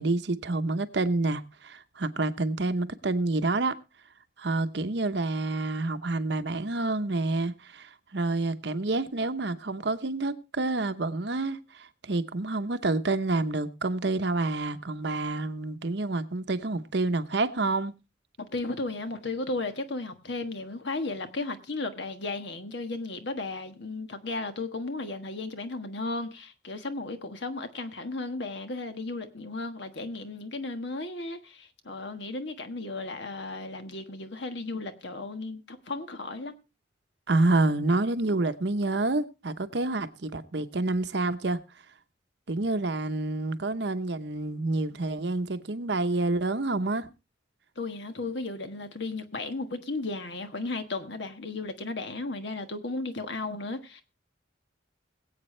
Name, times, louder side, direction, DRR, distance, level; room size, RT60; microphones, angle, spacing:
voice 1, 0.0-3.8 4.4-17.9 37.3-41.6 42.5-47.1, right 2 dB, 60° right, 0.9 m, -28 dB
voice 2, 18.5-36.5 47.8-54.0, left 3 dB, 65° left, 1.4 m, -35 dB
21.5 x 8.3 x 3.2 m
head